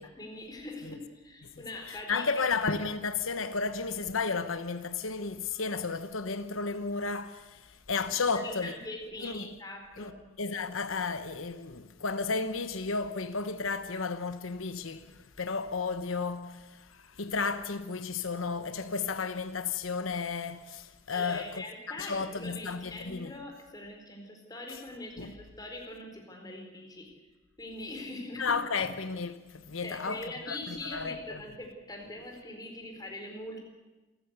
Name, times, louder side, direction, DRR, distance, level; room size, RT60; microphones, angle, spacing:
voice 1, 0.0-2.5 8.2-10.2 21.1-27.1 27.6-28.6 29.8-33.7, left 2 dB, 20° left, 4.3 m, -42 dB
voice 2, 1.6-8.7 9.2-9.5 10.0-10.1 10.4-23.3 24.7-24.8 25.2-25.3 28.4-31.4, left 4 dB, 85° left, 1.1 m, -33 dB
27.5 x 14.5 x 8.2 m
head